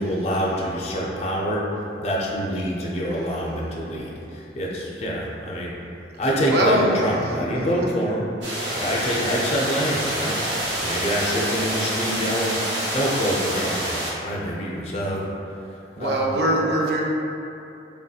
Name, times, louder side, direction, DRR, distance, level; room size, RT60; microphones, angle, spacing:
voice 1, 0.0-1.7 2.0-5.7 6.2-8.2 8.7-12.6 12.9-13.8 14.2-15.2 15.5-16.3, equal, 35° left, -3 dB, 0.4 m, -26 dB
voice 2, 6.5-7.9 16.0-17.0, right 1 dB, 60° right, -2 dB, 0.4 m, -23 dB
sound 1, 8.4-14.1, right 1 dB, 75° right, 0.8 m, -27 dB
3.4 x 2.7 x 2.3 m, 2.7 s
head